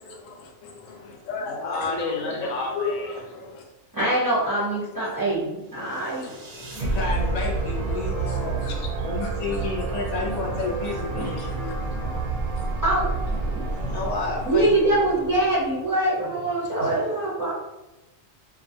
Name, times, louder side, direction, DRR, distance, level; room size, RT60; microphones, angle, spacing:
voice 1, 0.1-3.6 5.8-6.9 8.0-8.9 9.2-9.3 11.2-11.5 12.5-12.6 13.5-14.0 16.2-16.3 16.7-17.0, left 3 dB, 85° left, 1 dB, 0.9 m, -36 dB
voice 2, 1.6-3.2 6.7-8.6 9.0-11.7 13.6-14.7 15.1-15.2, left 3 dB, 50° left, -2 dB, 0.5 m, -31 dB
voice 3, 3.9-6.3 9.0-9.1 11.1-11.3 11.9-12.2 12.8-13.7 14.4-17.5, right 1 dB, 25° right, -9 dB, 0.5 m, -24 dB
sound 1, 5.9-16.1, right 3 dB, 65° right, 0.7 m, -29 dB
2.3 x 2.3 x 2.7 m, 0.99 s
omnidirectional pair, 1.3 m